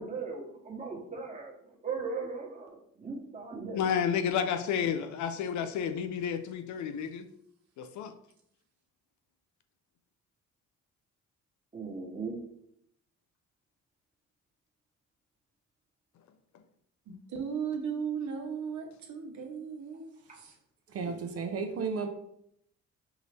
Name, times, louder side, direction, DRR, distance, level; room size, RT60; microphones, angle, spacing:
voice 1, 0.0-1.5 1.8-3.8 11.7-12.4 20.3-20.4, right 4 dB, 25° right, -1 dB, 1.2 m, -38 dB
voice 2, 3.7-7.3 7.8-8.1 21.1-21.2, left 8 dB, 70° left, 8 dB, 0.5 m, -31 dB
voice 3, 17.1-20.5, right 6 dB, 70° right, 3 dB, 1.0 m, -36 dB
voice 4, 20.9-22.1, right 5 dB, 50° right, 4 dB, 0.7 m, -33 dB
4.7 x 2.6 x 3.3 m, 0.70 s
cardioid pair, 90°, 30 cm